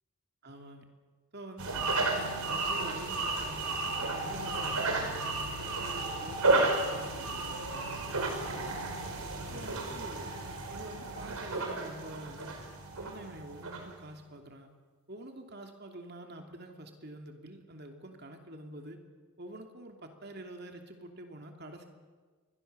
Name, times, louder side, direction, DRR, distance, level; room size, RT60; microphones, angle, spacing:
voice 1, 0.4-0.8 1.3-5.3 5.6-8.8 9.5-10.4 10.7-12.6 13.0-14.7 15.1-19.0 19.4-21.9, right 1 dB, 50° right, 4 dB, 2.9 m, -47 dB
sound 1, 1.6-13.9, right 2 dB, 85° right, 4.9 m, -33 dB
29.0 x 23.0 x 6.9 m, 1.4 s
head